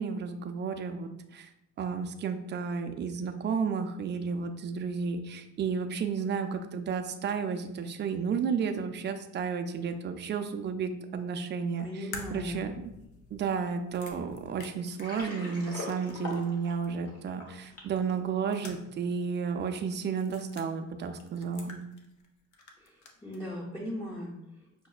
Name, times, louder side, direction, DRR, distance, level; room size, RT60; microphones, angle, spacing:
voice 1, 0.0-1.5 1.8-11.9 12.3-12.9 13.3-21.8, right 6 dB, 35° right, 7 dB, 0.4 m, -32 dB
voice 2, 11.8-12.6 22.8-24.9, equal, 15° left, -4 dB, 0.7 m, -39 dB
sound 1, 12.1-16.6 16.8-16.9 18.1-19.1 19.3-19.4 20.1-20.7 21.2-22.3 22.5-23.4, left 4 dB, 75° left, 0.6 m, -48 dB
Water, 14.8-18.0, left 2 dB, 50° left, 1.1 m, -41 dB
5.9 x 2.1 x 2.3 m, 0.89 s
cardioid pair, 90°, 30 cm